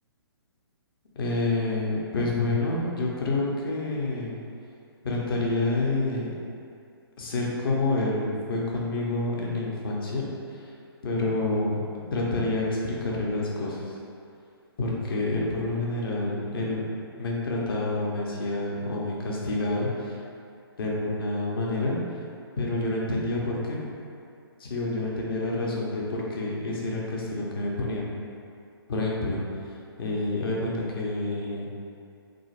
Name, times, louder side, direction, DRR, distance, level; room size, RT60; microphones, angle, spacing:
voice 1, 1.2-4.3 5.0-6.3 7.2-10.3 10.6-10.7 11.0-11.8 12.1-14.0 14.8-16.8 17.2-20.2 20.8-22.0 22.6-23.8 24.6-28.0 28.9-29.4 30.0-31.7, left 2 dB, 60° left, -3 dB, 0.7 m, -28 dB
3.7 x 2.0 x 2.4 m, 2.5 s
hypercardioid pair, 135°, 13 cm